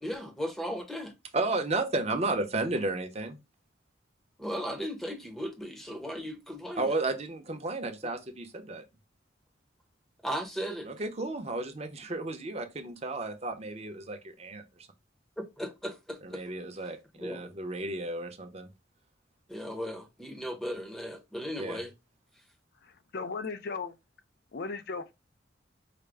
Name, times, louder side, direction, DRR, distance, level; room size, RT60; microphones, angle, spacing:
voice 1, 0.0-1.1 4.4-6.9 10.2-10.9 15.4-16.4 17.2-17.5 19.5-21.9, equal, ahead, 0.7 m, -36 dB
voice 2, 1.3-3.4 6.8-8.8 10.9-14.6 16.2-18.7 21.6-21.8, right 2 dB, 35° right, 0.7 m, -33 dB
voice 3, 22.8-24.0 24.5-25.1, left 4 dB, 55° left, 0.5 m, -36 dB
5.0 x 2.1 x 3.4 m
head